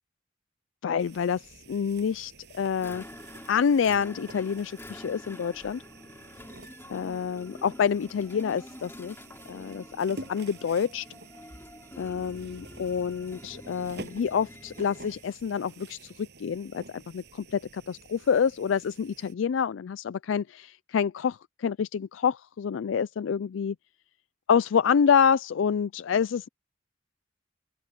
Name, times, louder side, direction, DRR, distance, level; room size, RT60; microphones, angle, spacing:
voice 1, 0.8-3.0 3.5-5.8 6.9-9.2 9.5-11.1 12.0-23.8 24.5-26.5, left 7 dB, 75° left, 0.4 m, -27 dB
sound 1, 1.0-19.3, right 3 dB, 60° right, 7.4 m, -49 dB
sound 2, 2.8-15.3, left 1 dB, 10° left, 5.3 m, -47 dB
open air
head